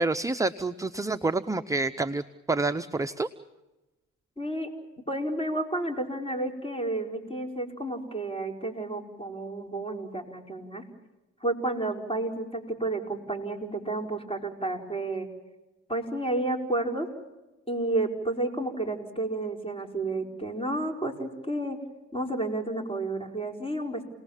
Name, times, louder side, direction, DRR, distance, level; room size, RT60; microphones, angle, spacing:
voice 1, 0.0-3.3, right 3 dB, 10° right, 8 dB, 0.7 m, -28 dB
voice 2, 4.4-4.7 5.1-10.8 11.4-15.3 15.9-17.1 17.7-21.8 22.1-24.0, right 2 dB, 20° left, 3 dB, 4.8 m, -31 dB
29.0 x 19.5 x 7.3 m, 1.0 s
cardioid pair, 90°, 30 cm